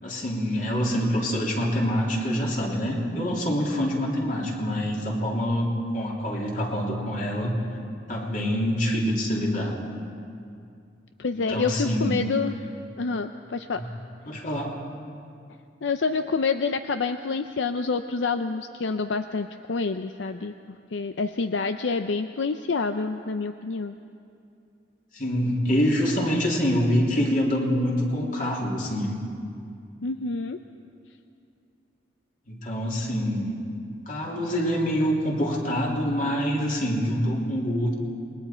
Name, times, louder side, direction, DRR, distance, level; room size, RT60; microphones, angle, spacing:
voice 1, 0.0-7.6 8.1-9.7 11.3-12.3 13.8-13.9 14.3-14.7 25.1-29.1 32.5-33.6 34.1-37.9, equal, 45° left, -2 dB, 3.2 m, -25 dB
voice 2, 11.2-12.6 13.0-13.8 15.8-20.5 20.9-24.0 30.0-30.6, left 4 dB, 80° left, 8 dB, 0.6 m, -27 dB
28.0 x 21.0 x 4.4 m, 2.4 s
head